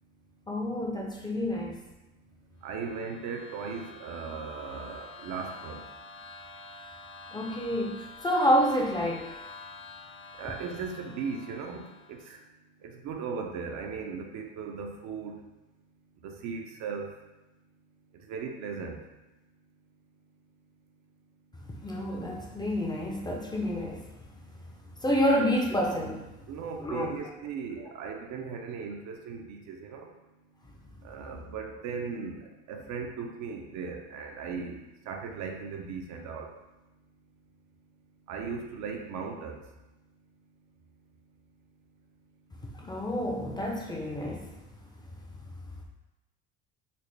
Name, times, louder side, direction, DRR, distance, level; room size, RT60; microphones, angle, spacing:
voice 1, 0.5-1.8 7.3-9.3 21.8-24.0 25.0-26.3 26.8-27.1 42.7-44.5, equal, 15° left, -1 dB, 0.5 m, -28 dB
voice 2, 2.6-5.8 10.4-12.4 12.8-15.3 16.2-17.1 18.3-19.0 26.5-30.1 31.0-34.8 35.1-36.5 38.3-39.6, right 5 dB, 60° right, 2 dB, 0.6 m, -37 dB
sound 1, 2.7-12.3, left 4 dB, 60° left, 0.7 m, -47 dB
4.1 x 2.0 x 3.3 m, 0.99 s
supercardioid pair, 100°, 32 cm